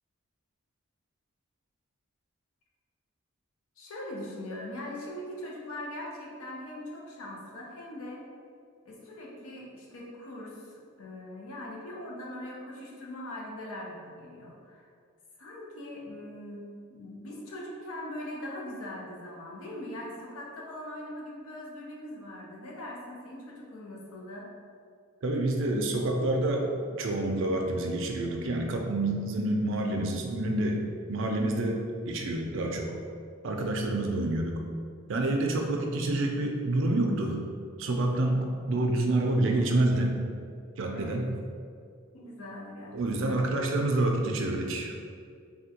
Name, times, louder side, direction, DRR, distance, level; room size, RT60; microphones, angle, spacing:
voice 1, 3.8-8.2 8.8-14.9 15.4-24.5 34.0-34.1 40.9-41.2 42.1-43.4, left 1 dB, 85° left, -2 dB, 0.6 m, -41 dB
voice 2, 25.2-32.9 33.4-34.6 35.1-37.4 37.8-40.2 40.8-41.3 42.9-44.9, right 2 dB, 65° right, 2 dB, 0.4 m, -28 dB
3.4 x 2.2 x 2.8 m, 2.2 s
head